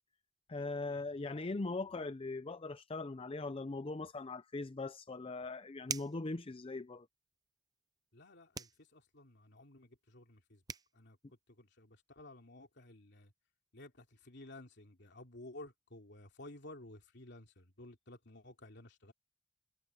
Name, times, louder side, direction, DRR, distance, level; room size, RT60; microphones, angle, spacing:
voice 1, 0.5-7.1, left 3 dB, 30° left, 0.5 m, -40 dB
sound 1, 5.9-6.3 8.5-8.8 10.3-10.4 10.7-10.9, right 6 dB, 20° right, 0.5 m, -41 dB
voice 2, 8.1-10.6 10.9-11.2 11.5-13.3 13.7-19.1, left 1 dB, 65° left, 3.0 m, -54 dB
head